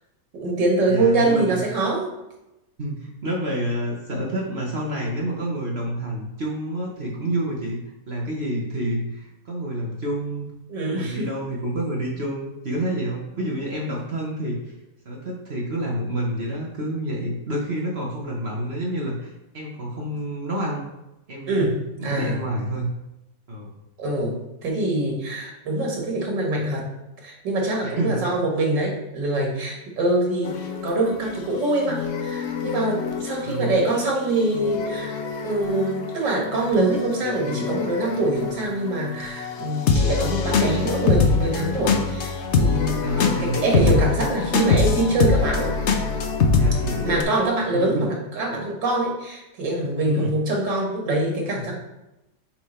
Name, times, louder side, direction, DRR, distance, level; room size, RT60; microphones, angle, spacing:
voice 1, 0.3-2.1 10.7-11.3 21.5-22.4 24.0-26.8 27.2-30.6 30.8-45.7 47.0-51.8, right 2 dB, 90° right, 0 dB, 2.2 m, -24 dB
voice 2, 0.9-1.5 2.8-10.5 10.9-14.7 15.0-20.8 21.3-21.7 22.0-22.9 23.5-23.7 27.8-28.2 33.4-33.8 43.0-43.6 46.6-47.2 47.7-48.1 50.0-50.3, right 1 dB, 40° right, -2 dB, 1.1 m, -28 dB
sound 1, 30.4-47.2, left 5 dB, 60° left, 0.8 m, -24 dB
7.5 x 3.6 x 4.3 m, 0.92 s
omnidirectional pair, 1.9 m